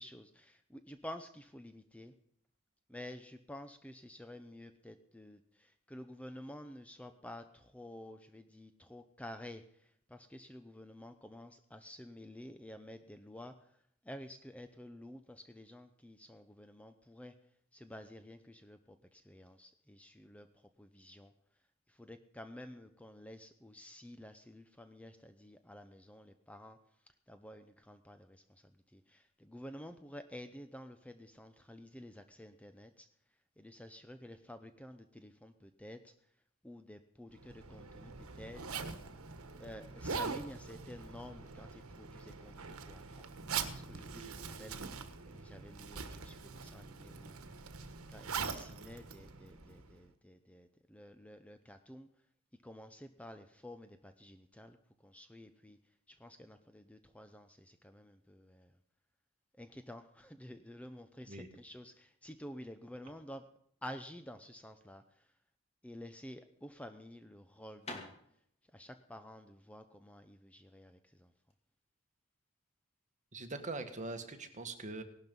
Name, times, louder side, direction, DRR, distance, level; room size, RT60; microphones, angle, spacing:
voice 1, 0.0-2.1 2.9-13.6 14.0-17.4 17.7-21.3 21.9-26.8 27.1-33.1 33.6-36.1 36.6-38.6 39.6-43.2 43.7-47.4 48.1-52.1 52.6-54.8 55.0-55.8 56.1-58.7 59.6-63.5 63.8-65.3 65.8-68.1 68.7-71.3, left 1 dB, 5° left, 9 dB, 0.7 m, -51 dB
Zipper (clothing), 37.4-50.0, right 5 dB, 80° right, 1.4 m, -43 dB
sound 1, 66.6-71.6, left 2 dB, 30° left, 2.6 m, -52 dB
voice 2, 73.3-75.0, right 2 dB, 35° right, 7 dB, 1.7 m, -42 dB
18.0 x 12.0 x 5.4 m, 0.68 s
head